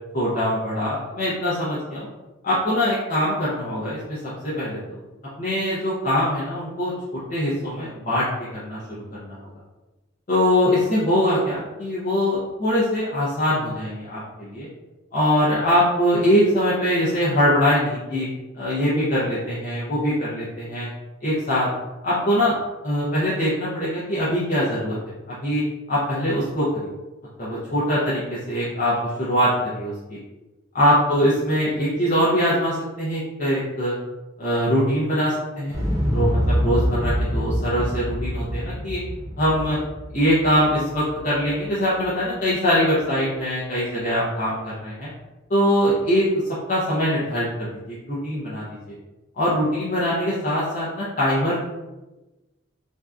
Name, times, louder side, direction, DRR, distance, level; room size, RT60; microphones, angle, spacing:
voice 1, 0.1-2.1 2.4-5.0 5.4-8.3 8.5-8.8 9.1-9.3 10.3-14.7 15.1-18.3 18.5-20.9 21.2-21.7 22.0-22.6 22.8-25.0 25.3-25.6 25.9-26.9 27.4-30.2 30.7-33.9 34.4-35.8 36.1-39.0 39.4-39.8 40.1-45.1 45.5-46.3 46.7-48.7 49.4-51.6, equal, 40° left, -9 dB, 0.5 m, -22 dB
Explosion, 35.7-41.7 42.0-42.1, equal, 15° right, 0.6 m, -26 dB
2.6 x 2.2 x 2.3 m, 1.1 s
head